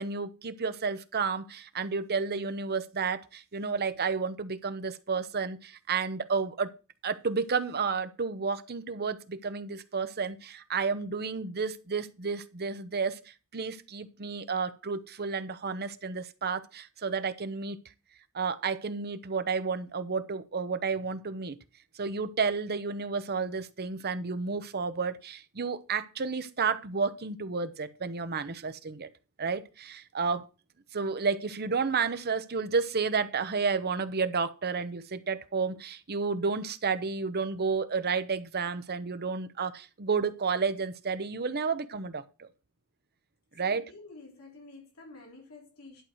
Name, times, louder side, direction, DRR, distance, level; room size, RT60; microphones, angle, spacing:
voice 1, 0.0-6.7 7.0-17.8 18.3-21.6 21.9-29.1 29.4-30.5 30.9-42.5 43.6-43.8, right 5 dB, 45° right, 0.9 m, -31 dB
voice 2, 43.6-46.0, left 3 dB, 70° left, 3.5 m, -49 dB
11.5 x 4.8 x 6.3 m
head